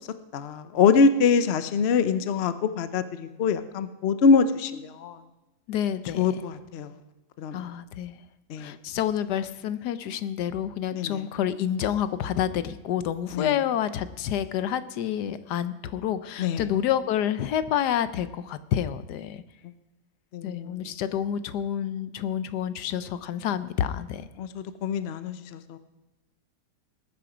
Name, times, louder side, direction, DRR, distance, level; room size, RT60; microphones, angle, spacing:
voice 1, 0.3-5.2 6.2-6.9 7.4-7.6 8.5-8.7 10.9-11.2 13.3-13.5 16.4-16.6 20.3-20.9 24.4-25.8, left 5 dB, 90° left, 11 dB, 0.5 m, -24 dB
voice 2, 5.7-6.4 7.5-8.2 8.6-19.4 20.4-24.3, left 10 dB, 70° left, 13 dB, 1.1 m, -28 dB
19.5 x 9.3 x 5.0 m, 1.1 s
omnidirectional pair, 2.1 m